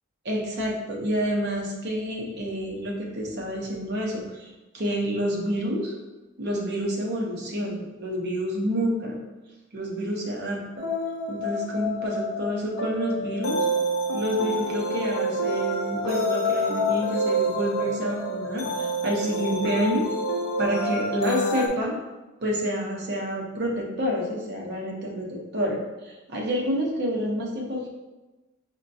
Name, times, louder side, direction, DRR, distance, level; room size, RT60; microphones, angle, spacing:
voice 1, 0.2-5.9 6.4-9.1 9.7-10.8 11.3-13.6 14.1-20.1 20.6-21.9 22.4-27.9, equal, 55° right, -2 dB, 0.7 m, -28 dB
sound 1, 10.8-21.7, equal, 80° left, 0.5 m, -27 dB
5.0 x 2.2 x 2.6 m, 1.1 s
head